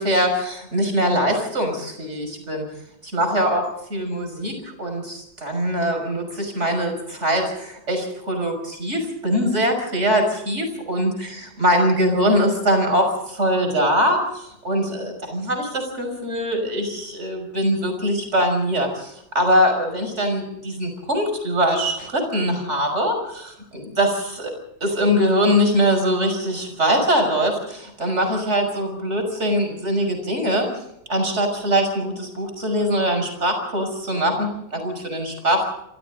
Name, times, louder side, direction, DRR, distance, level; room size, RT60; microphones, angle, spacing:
voice 1, 0.0-2.6 3.0-24.5 24.8-30.7 31.1-35.7, equal, 35° right, 5 dB, 6.3 m, -22 dB
27.5 x 25.0 x 3.9 m, 0.79 s
omnidirectional pair, 2.2 m